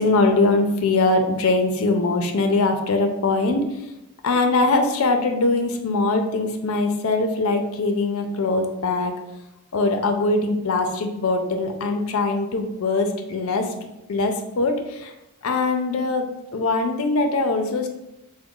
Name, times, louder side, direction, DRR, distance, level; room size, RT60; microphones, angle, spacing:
voice 1, 0.0-3.7 4.2-9.1 9.7-13.7 14.1-15.1 15.4-16.3 16.5-17.9, left 3 dB, 70° left, 5 dB, 0.5 m, -22 dB
3.9 x 2.1 x 3.6 m, 0.92 s
head